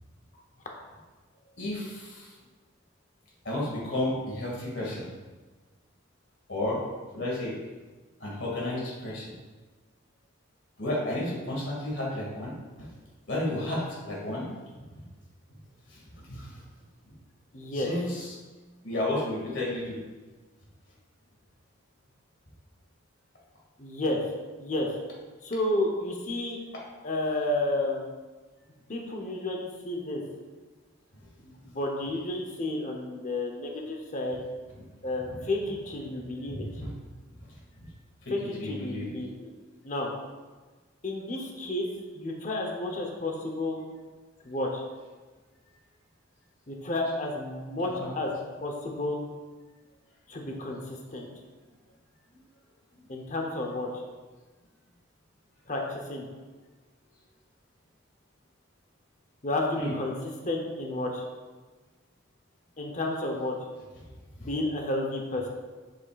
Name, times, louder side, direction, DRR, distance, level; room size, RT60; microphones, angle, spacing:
voice 1, 1.6-2.3 3.4-5.0 6.5-6.8 7.1-7.6 8.2-9.3 10.8-12.5 13.3-14.5 14.9-15.0 15.9-16.6 17.1-17.2 17.7-18.3 18.8-20.0 35.3-35.4 36.5-36.9 37.8-37.9 38.2-38.3 38.6-39.2 48.0-48.1 59.8-59.9 64.4-64.5, left 1 dB, 60° left, -4 dB, 2.2 m, -32 dB
voice 2, 17.5-17.9 23.8-24.2 24.6-24.9 25.4-26.6 27.0-28.1 28.9-30.2 31.4-34.4 35.0-36.7 38.3-39.5 39.8-40.1 41.0-41.9 42.1-43.8 44.4-44.8 46.7-48.3 48.6-49.2 50.3-50.8 51.1-51.3 53.1-53.9 55.7-56.3 59.4-61.2 62.8-63.5 64.4-65.4, left 2 dB, 40° left, 1 dB, 0.9 m, -31 dB
7.7 x 7.0 x 2.5 m, 1.3 s
head